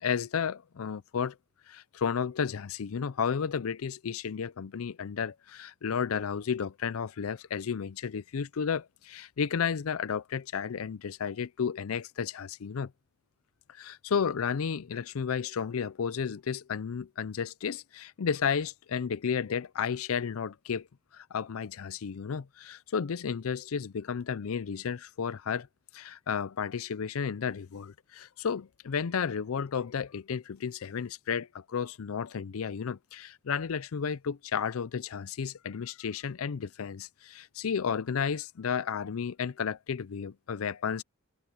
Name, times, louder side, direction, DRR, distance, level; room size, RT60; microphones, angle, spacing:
voice 1, 0.0-1.4 1.7-12.9 13.7-20.9 21.1-25.7 25.9-41.0, left 6 dB, 90° left, 0.5 m, -32 dB
head